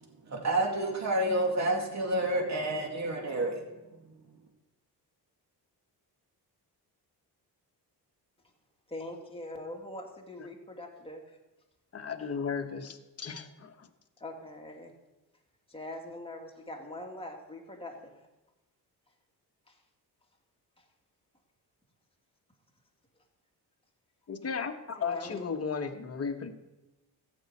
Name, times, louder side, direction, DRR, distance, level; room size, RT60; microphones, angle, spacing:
voice 1, 0.3-3.6, right 1 dB, 40° right, 1 dB, 2.3 m, -29 dB
voice 2, 8.9-11.4 14.2-14.9 15.7-18.2 19.7-19.8 25.0-25.4, left 1 dB, 15° left, 0 dB, 2.2 m, -42 dB
voice 3, 11.9-13.9 24.3-26.5, left 5 dB, 35° left, 5 dB, 1.2 m, -35 dB
14.0 x 5.4 x 8.5 m, 1.0 s
cardioid pair, 110°, 40 cm